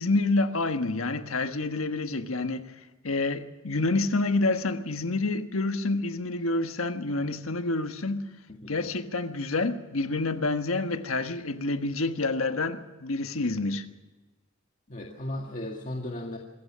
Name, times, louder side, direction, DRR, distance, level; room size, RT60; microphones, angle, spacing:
voice 1, 0.0-2.7 3.0-8.3 8.7-13.8, left 2 dB, 80° left, 1.4 m, -28 dB
voice 2, 14.9-16.4, left 1 dB, 40° left, 1.9 m, -36 dB
25.5 x 15.5 x 7.4 m
head